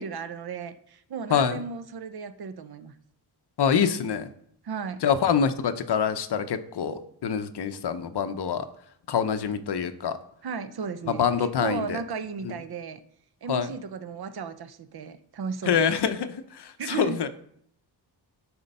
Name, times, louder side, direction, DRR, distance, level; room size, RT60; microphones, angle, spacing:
voice 1, 0.0-2.9 4.6-5.0 10.4-13.0 13.4-15.8 16.8-17.2, right 6 dB, 55° right, 12 dB, 0.7 m, -35 dB
voice 2, 3.6-4.3 5.0-8.7 9.1-10.2 11.1-12.0 12.4-12.5 13.5-13.7 15.7-17.3, left 7 dB, 65° left, 10 dB, 0.7 m, -25 dB
11.0 x 4.5 x 5.4 m, 0.68 s
wide cardioid pair, 155°, 44 cm